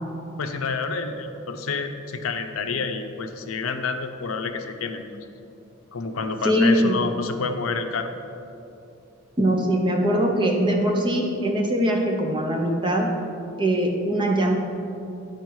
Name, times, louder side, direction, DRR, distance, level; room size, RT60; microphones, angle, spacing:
voice 1, 0.4-5.3 5.9-8.1, left 4 dB, 85° left, 7 dB, 0.6 m, -29 dB
voice 2, 6.4-7.0 9.4-13.1 13.6-14.6, equal, 20° right, 1 dB, 0.7 m, -21 dB
9.8 x 4.4 x 4.7 m, 2.7 s
head